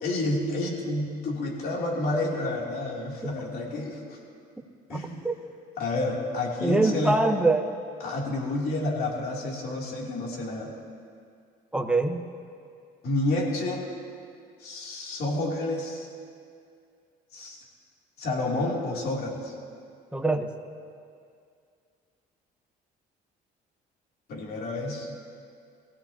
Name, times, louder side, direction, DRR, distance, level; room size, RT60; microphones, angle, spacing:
voice 1, 0.0-4.2 4.9-5.3 5.8-7.2 8.0-10.7 13.0-13.8 14.6-16.1 17.3-17.6 18.2-19.5 24.3-25.1, left 2 dB, 65° left, -3 dB, 3.2 m, -29 dB
voice 2, 6.6-7.7 11.7-12.2 20.1-20.5, right 2 dB, 5° right, 4 dB, 1.1 m, -23 dB
23.0 x 16.0 x 2.9 m, 2.3 s
cardioid pair, 110°, 17 cm